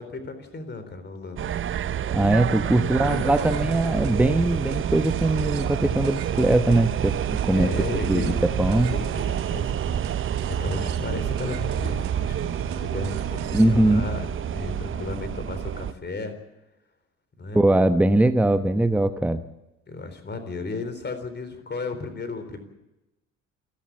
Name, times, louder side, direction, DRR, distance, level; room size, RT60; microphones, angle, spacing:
voice 1, 0.0-1.5 3.0-3.5 7.5-8.4 8.7-16.3 17.4-17.6 19.9-22.6, left 3 dB, 25° left, 9 dB, 4.0 m, -34 dB
sound 1, 1.4-15.9, right 9 dB, 35° right, 0.8 m, -28 dB
voice 2, 2.1-7.7 8.0-8.9 13.5-14.1 17.5-19.4, right 1 dB, 5° right, 11 dB, 1.0 m, -21 dB
sound 2, 3.0-13.7, right 9 dB, 60° right, 1.9 m, -38 dB
28.0 x 12.0 x 8.6 m, 0.96 s
figure-of-eight pair, 55°, 38 cm